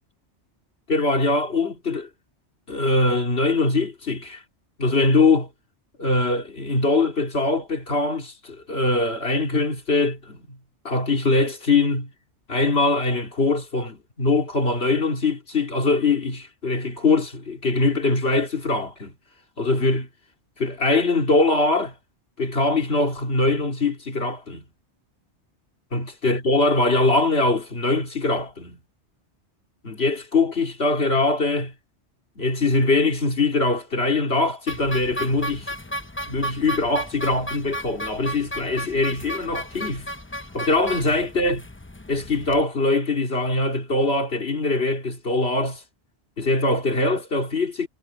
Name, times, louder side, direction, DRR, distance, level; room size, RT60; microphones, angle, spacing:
voice 1, 0.9-2.1 2.7-4.4 4.8-5.5 6.0-10.6 10.8-12.1 12.5-19.1 19.6-20.1 20.6-21.9 22.4-24.6 25.9-28.8 29.8-31.7 32.4-35.7 36.3-40.1 40.5-41.6 42.1-45.8 46.4-47.9, left 2 dB, 60° left, 2.9 m, -22 dB
sound 1, 34.7-42.6, equal, 15° left, 0.7 m, -34 dB
omnidirectional pair, 1.2 m